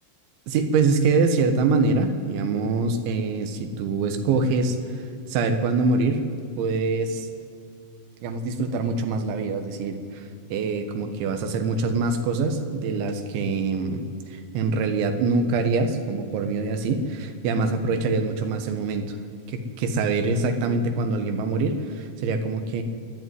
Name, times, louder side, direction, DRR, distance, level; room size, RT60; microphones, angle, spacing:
voice 1, 0.5-6.3 6.6-7.3 8.2-10.3 10.5-14.0 14.3-19.2 19.5-22.8, right 3 dB, 80° right, 7 dB, 3.6 m, -24 dB
27.0 x 11.0 x 9.4 m, 2.3 s
omnidirectional pair, 5.4 m